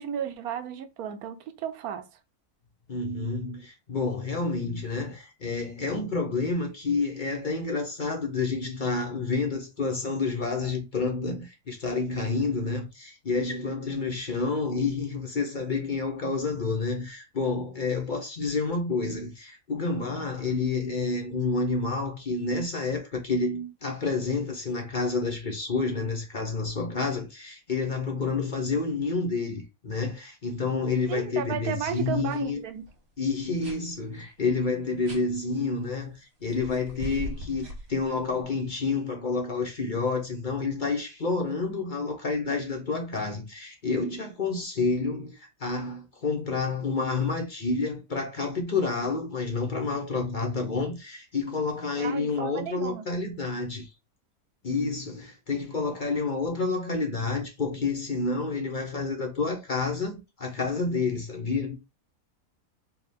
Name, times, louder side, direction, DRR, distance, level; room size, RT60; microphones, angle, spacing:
voice 1, 0.0-2.1 31.1-32.9 52.0-53.1, right 8 dB, 85° right, 1.2 m, -33 dB
voice 2, 2.9-32.6 33.2-53.9 54.6-61.8, left 4 dB, 40° left, 0.9 m, -29 dB
sound 1, 32.3-32.4 32.7-33.0 33.6-33.8 35.0-35.2 36.5-38.4, right 1 dB, 60° right, 1.8 m, -39 dB
4.7 x 2.4 x 3.4 m
omnidirectional pair, 1.5 m